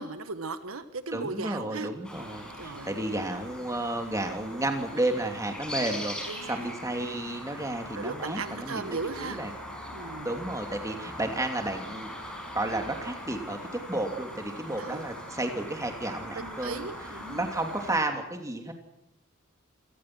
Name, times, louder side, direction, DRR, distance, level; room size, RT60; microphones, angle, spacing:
voice 1, 0.0-1.9 2.6-3.0 6.3-6.7 7.9-9.4 9.9-10.3 14.8-15.0 16.3-17.4, right 3 dB, 85° right, 11 dB, 1.4 m, -37 dB
voice 2, 1.1-8.8 9.2-9.5 10.2-12.1 12.5-13.6 13.9-16.9 17.3-18.7, right 1 dB, 15° right, 4 dB, 2.9 m, -32 dB
sound 1, 2.0-18.0, equal, 5° left, 5.7 m, -41 dB
27.5 x 18.5 x 6.2 m, 0.86 s
head